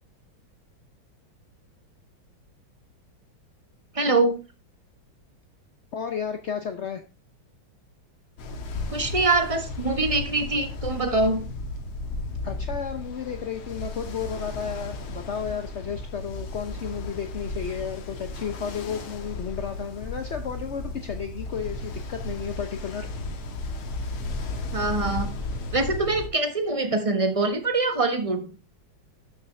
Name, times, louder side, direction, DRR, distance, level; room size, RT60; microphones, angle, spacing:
voice 1, 3.9-4.4 8.9-11.5 24.7-25.3 25.7-28.5, right 3 dB, 20° right, 6 dB, 1.0 m, -24 dB
voice 2, 5.9-7.0 12.4-23.1 26.9-27.0, left 7 dB, 65° left, 6 dB, 0.6 m, -33 dB
Ocean, 8.4-26.3, left 2 dB, 85° left, 2.1 m, -34 dB
12.0 x 6.4 x 3.3 m, 0.29 s
omnidirectional pair, 2.3 m